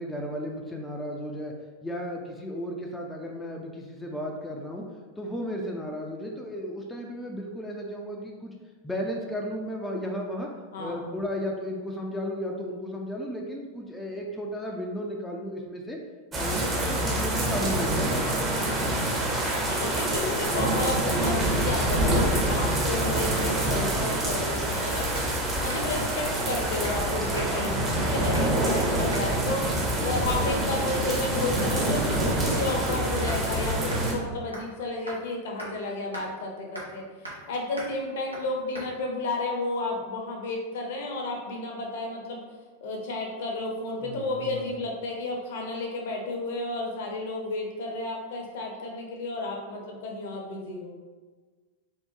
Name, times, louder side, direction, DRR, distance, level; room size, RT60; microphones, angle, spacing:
voice 1, 0.0-1.5 1.8-4.9 5.2-8.5 8.8-10.5 10.8-16.0 16.4-18.5 27.8-28.9 44.0-44.7, equal, 5° left, -1 dB, 0.4 m, -34 dB
voice 2, 10.7-11.2 19.5-25.1 25.6-29.7 30.0-42.4 42.8-50.9, left 2 dB, 55° left, 0 dB, 0.6 m, -32 dB
sound 1, 16.3-34.1, right 1 dB, 20° right, 0.7 m, -26 dB
sound 2, 25.1-25.3 25.7-25.9 26.3-26.5 26.8-27.0 27.3-27.7 28.3-28.6 29.1-29.3 29.8-30.0 30.5-30.6 31.0-31.3 31.6-31.7 32.1-33.4 33.9-34.0 34.5-34.8 35.1-35.2 35.6-35.7 36.1-36.3 36.7-37.0 37.2-37.5 37.8-37.9 38.3-38.5 38.7-38.9, right 1 dB, 85° right, 0.8 m, -40 dB
3.5 x 2.2 x 2.9 m, 1.4 s
figure-of-eight pair, 90°, 0 cm